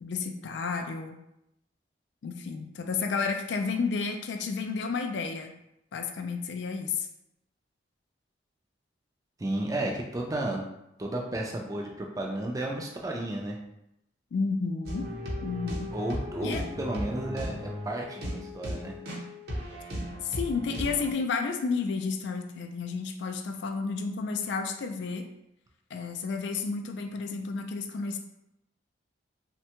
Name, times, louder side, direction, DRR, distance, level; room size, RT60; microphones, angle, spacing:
voice 1, 0.0-1.2 2.2-5.5 5.9-7.1 14.3-15.1 15.4-15.9 16.4-16.6 20.2-25.3 25.9-28.2, left 4 dB, 65° left, 4 dB, 0.3 m, -31 dB
voice 2, 9.4-10.6 11.0-13.6 15.9-18.9, right 1 dB, 20° right, 0 dB, 0.4 m, -33 dB
sound 1, 14.8-21.1, equal, 55° right, 0.8 m, -36 dB
3.3 x 2.2 x 2.8 m, 0.83 s
head